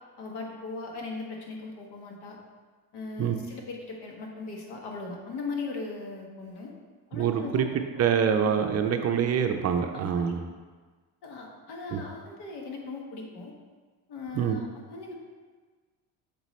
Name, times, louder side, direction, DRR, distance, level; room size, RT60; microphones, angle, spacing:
voice 1, 0.2-2.4 2.9-6.7 7.1-7.7 8.4-8.6 9.9-10.2 11.2-13.5 14.1-15.1, left 3 dB, 75° left, 0 dB, 1.4 m, -38 dB
voice 2, 7.1-7.7 8.0-10.4 11.9-12.0 14.3-14.6, right 7 dB, 40° right, 5 dB, 0.5 m, -25 dB
6.7 x 5.4 x 3.1 m, 1.4 s
cardioid pair, 120°, 41 cm